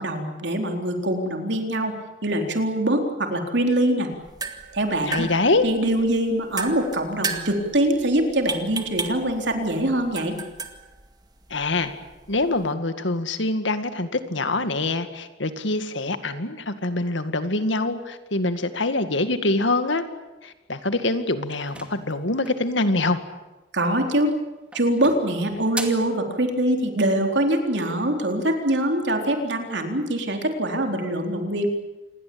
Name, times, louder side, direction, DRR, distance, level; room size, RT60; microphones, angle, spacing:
voice 1, 0.0-2.0 2.2-4.1 4.7-5.3 5.6-10.4 23.7-24.3 24.7-31.7, right 1 dB, 65° right, 4 dB, 4.0 m, -23 dB
sound 1, 4.1-12.7, right 4 dB, 20° right, 2.1 m, -35 dB
voice 2, 5.1-5.7 11.5-11.9 12.3-20.0 20.4-23.2, left 2 dB, 80° left, 10 dB, 2.1 m, -24 dB
sound 2, 21.5-22.7 24.0-24.4 24.7-26.2, right 1 dB, 5° right, 2.4 m, -37 dB
27.5 x 21.0 x 8.7 m, 1.1 s
head